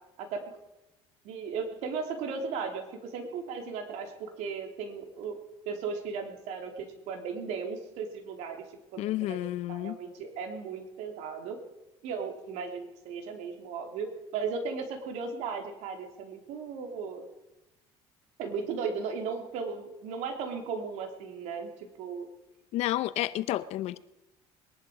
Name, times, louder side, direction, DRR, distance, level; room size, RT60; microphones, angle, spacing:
voice 1, 0.2-0.6 1.2-5.4 5.6-9.4 9.7-11.6 12.0-17.2 18.4-22.3, right 5 dB, 75° right, 4 dB, 3.1 m, -36 dB
voice 2, 9.0-10.0 22.7-24.0, left 15 dB, 65° left, 16 dB, 0.8 m, -30 dB
22.0 x 11.0 x 5.0 m, 0.94 s
cardioid pair, 115°, 12 cm